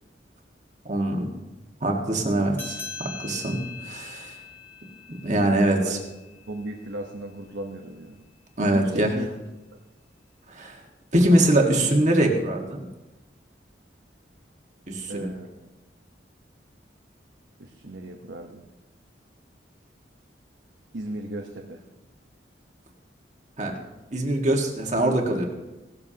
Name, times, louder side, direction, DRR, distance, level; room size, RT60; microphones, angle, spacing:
voice 1, 0.9-1.3 1.8-4.3 5.1-6.0 8.6-9.2 10.5-10.8 11.1-12.8 14.9-15.3 23.6-23.7 24.1-25.5, right 1 dB, 40° right, 2 dB, 1.7 m, -23 dB
sound 1, 2.5-7.4, left 5 dB, 15° left, 2.6 m, -42 dB
voice 2, 5.7-6.0 6.5-8.2 8.7-9.3 9.7-9.8 15.1-15.7 17.6-18.7 20.9-21.8, right 1 dB, 80° right, 2 dB, 1.0 m, -36 dB
17.5 x 12.5 x 2.9 m, 1.1 s
head